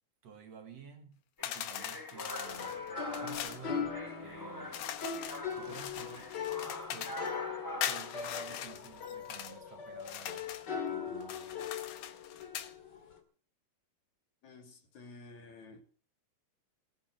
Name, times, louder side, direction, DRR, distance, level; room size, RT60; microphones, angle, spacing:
voice 1, 0.2-2.8 3.2-4.9 5.5-6.3 6.9-7.2 7.8-11.7, right 7 dB, 55° right, 2.9 m, -53 dB
sound 1, 1.4-3.6 4.7-7.3 7.8-9.5 10.0-10.7 11.2-12.7, left 11 dB, 90° left, 2.7 m, -41 dB
sound 2, 1.4-8.6, equal, 10° left, 1.2 m, -45 dB
sound 3, 2.4-13.2, left 6 dB, 35° left, 2.4 m, -40 dB
voice 2, 14.4-15.8, left 3 dB, 65° left, 3.8 m, -52 dB
18.5 x 8.0 x 7.8 m
omnidirectional pair, 3.6 m